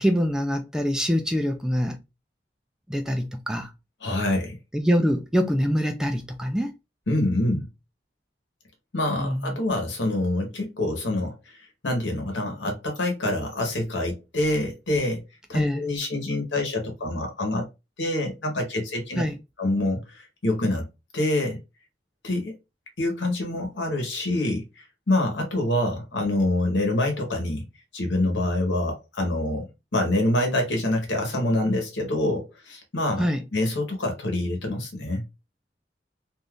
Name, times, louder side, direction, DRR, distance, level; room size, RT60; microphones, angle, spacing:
voice 1, 0.0-2.0 2.9-3.7 4.7-6.7 9.1-9.6 15.5-15.9 19.2-19.3 33.2-33.4, equal, 5° right, 0.3 m, -24 dB
voice 2, 4.0-4.6 7.1-7.7 8.9-15.2 15.5-17.7 18.0-19.2 19.6-20.9 21.1-21.6 22.2-22.5 23.0-27.6 27.9-33.3 33.5-35.2, left 1 dB, 80° left, 1.1 m, -26 dB
2.5 x 2.4 x 3.4 m
head